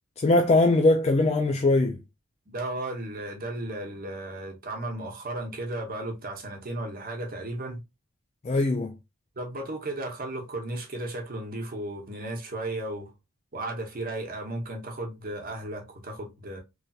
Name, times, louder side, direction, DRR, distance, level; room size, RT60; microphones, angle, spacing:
voice 1, 0.2-2.0 8.4-8.9, left 2 dB, 30° left, 0.3 m, -21 dB
voice 2, 2.5-7.8 9.4-13.1 13.5-16.6, right 1 dB, 45° right, 0.9 m, -35 dB
3.1 x 2.7 x 2.3 m
head